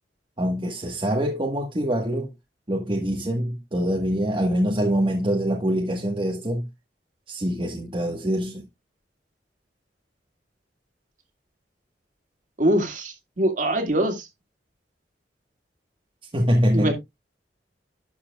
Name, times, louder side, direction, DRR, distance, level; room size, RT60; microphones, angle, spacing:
voice 1, 0.4-2.3 2.7-6.6 7.3-8.6 16.3-16.9, equal, 30° right, 1.4 m, -24 dB
voice 2, 12.6-14.3 16.7-16.9, right 1 dB, 50° right, 2.3 m, -23 dB
12.0 x 7.1 x 2.4 m
head